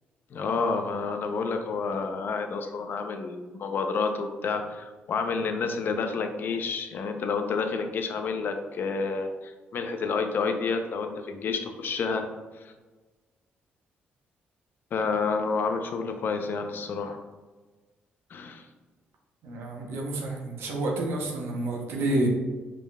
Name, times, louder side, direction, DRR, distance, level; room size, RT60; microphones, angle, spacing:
voice 1, 0.3-12.3 12.5-12.7 14.9-17.2 18.3-18.7, left 4 dB, 60° left, 6 dB, 0.5 m, -29 dB
voice 2, 19.4-22.3, right 2 dB, 80° right, -1 dB, 0.8 m, -29 dB
5.0 x 3.5 x 2.2 m, 1.3 s
cardioid pair, 85°, 4 cm